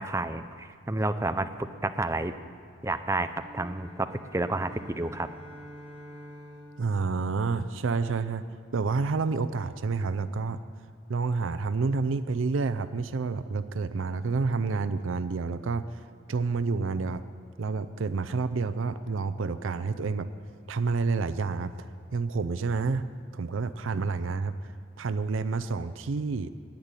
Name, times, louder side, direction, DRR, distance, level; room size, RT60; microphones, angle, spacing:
voice 1, 0.0-1.5 1.8-2.3 2.8-5.3, right 2 dB, 15° right, 9 dB, 0.5 m, -30 dB
sound 1, 3.3-8.0, equal, 30° left, 3.5 m, -48 dB
voice 2, 6.8-8.4 8.7-10.6 11.1-15.8 16.3-17.2 17.6-20.3 20.7-21.9 22.1-23.0 23.3-24.5 25.0-26.5, right 4 dB, 90° right, 11 dB, 0.5 m, -29 dB
10.5 x 9.0 x 9.7 m, 2.4 s
head